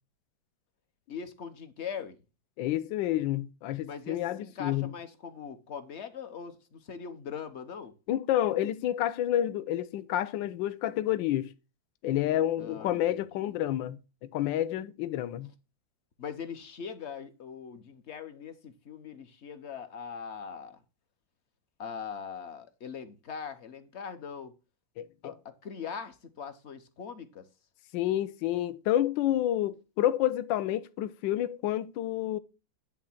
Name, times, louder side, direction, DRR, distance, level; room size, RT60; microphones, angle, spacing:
voice 1, 1.1-2.2 3.9-7.9 12.6-13.5 16.2-20.8 21.8-24.5 25.2-27.5, left 6 dB, 50° left, 0.8 m, -41 dB
voice 2, 2.6-4.9 8.1-11.5 12.0-15.5 25.0-25.3 27.9-32.4, left 12 dB, 75° left, 1.3 m, -29 dB
10.5 x 3.5 x 7.1 m
omnidirectional pair, 2.1 m